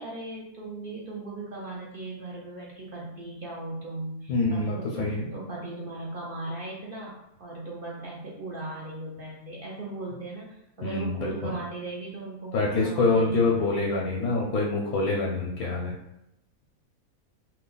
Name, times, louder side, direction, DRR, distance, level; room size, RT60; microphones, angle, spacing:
voice 1, 0.0-13.8, right 2 dB, 55° right, -4 dB, 0.6 m, -38 dB
voice 2, 4.3-5.3 10.8-11.5 12.5-15.9, left 3 dB, 85° left, -2 dB, 1.1 m, -26 dB
2.7 x 2.3 x 3.8 m, 0.84 s
omnidirectional pair, 1.5 m